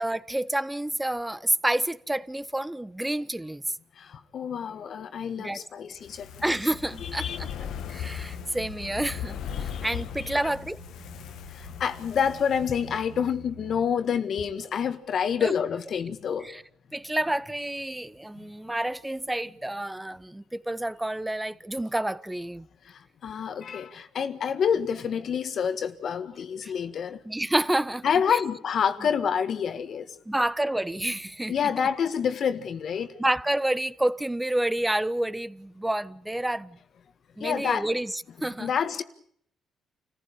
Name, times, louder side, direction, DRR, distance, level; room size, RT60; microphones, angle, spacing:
voice 1, 0.0-3.6 5.4-5.6 6.4-7.5 7.9-10.8 15.4-15.5 16.4-16.6 16.9-22.7 26.6-26.7 27.2-28.4 30.3-31.5 33.2-36.8 37.4-38.7, right 1 dB, 10° right, 1.1 m, -29 dB
voice 2, 4.0-6.3 7.0-7.4 9.5-9.8 10.2-10.5 11.5-16.5 18.4-18.5 22.8-27.2 28.0-30.1 31.5-33.1 37.4-37.9 38.6-39.0, left 7 dB, 60° left, 1.8 m, -28 dB
Fire, 6.0-13.3 13.6-13.7, left 9 dB, 80° left, 1.2 m, -38 dB
sound 1, 6.3-13.8, right 3 dB, 70° right, 1.6 m, -49 dB
28.5 x 15.0 x 8.6 m
cardioid pair, 90°, 0 cm